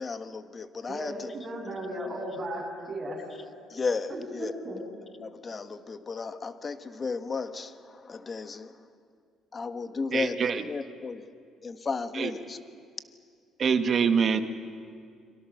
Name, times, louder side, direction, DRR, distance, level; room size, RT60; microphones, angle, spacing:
voice 1, 0.0-1.3 3.7-4.5 5.2-8.7 9.5-11.2 11.6-12.6, left 4 dB, 30° left, 10 dB, 1.4 m, -34 dB
voice 2, 0.9-3.2 4.1-4.8, right 1 dB, 30° right, -1 dB, 7.9 m, -36 dB
voice 3, 10.1-10.6 12.1-12.3 13.6-14.4, right 6 dB, 45° right, 9 dB, 1.5 m, -24 dB
29.5 x 23.5 x 6.6 m, 2.2 s
cardioid pair, 115°, 0 cm